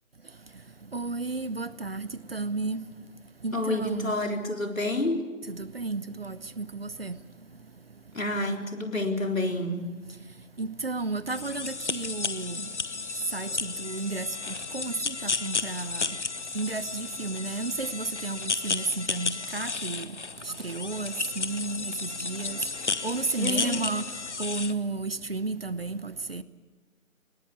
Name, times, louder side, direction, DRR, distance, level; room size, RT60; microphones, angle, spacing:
voice 1, 0.9-2.8 3.4-4.1 5.6-7.2 10.6-12.6 13.3-14.3 14.7-16.0 16.5-20.1 20.6-22.6 23.0-24.0 24.4-26.4, right 3 dB, 45° right, 0.9 m, -32 dB
voice 2, 3.5-5.3 8.1-9.9 23.4-23.8, left 2 dB, 70° left, 3.9 m, -29 dB
sound 1, 11.3-24.7, left 4 dB, 55° left, 1.1 m, -33 dB
21.0 x 19.0 x 8.4 m
figure-of-eight pair, 155°, 41 cm